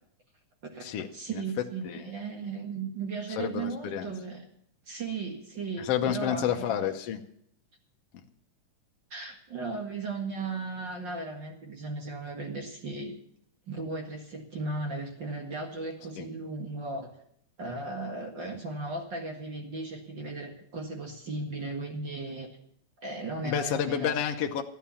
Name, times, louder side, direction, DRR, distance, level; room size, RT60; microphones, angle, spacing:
voice 1, 0.6-4.4 4.9-6.7 9.1-13.2 13.7-17.1 17.6-22.5 23.0-24.1, right 3 dB, 40° right, 2 dB, 2.1 m, -36 dB
voice 2, 3.3-4.1 5.8-7.2 16.2-16.3 23.4-24.6, left 9 dB, 65° left, 4 dB, 1.5 m, -30 dB
14.0 x 10.0 x 7.1 m, 0.69 s
omnidirectional pair, 3.8 m